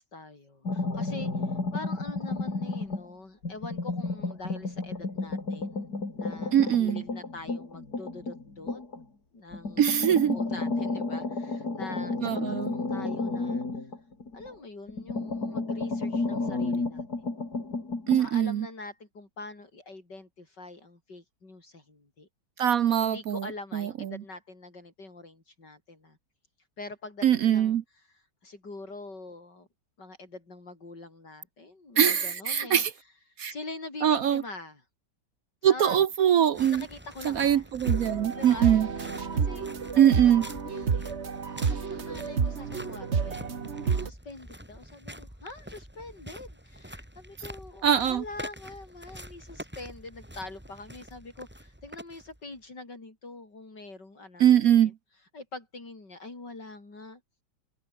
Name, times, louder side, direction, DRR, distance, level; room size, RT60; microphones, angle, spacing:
voice 1, 0.0-8.8 9.3-13.9 14.3-17.0 18.1-22.3 23.0-26.2 26.8-29.7 30.0-32.8 33.3-34.8 35.6-36.0 36.7-37.7 38.3-41.1 41.6-54.5 54.8-54.9 55.3-57.2, left 2 dB, 80° left, 6.4 m, -44 dB
sound 1, 0.6-3.1 3.4-9.0 9.5-14.5 14.9-18.2, left 3 dB, 60° left, 4.9 m, -32 dB
voice 2, 6.5-7.0 9.8-10.4 12.2-12.7 18.1-18.7 22.6-23.5 23.7-24.2 27.2-27.8 32.0-32.9 33.4-33.5 34.0-34.4 35.6-36.8 37.2-38.9 40.0-40.5 47.8-48.2 54.4-54.9, right 10 dB, 60° right, 1.1 m, -22 dB
sound 2, 36.5-52.6, equal, 5° right, 4.3 m, -46 dB
sound 3, 37.8-44.1, right 5 dB, 40° right, 1.7 m, -30 dB
omnidirectional pair, 1.8 m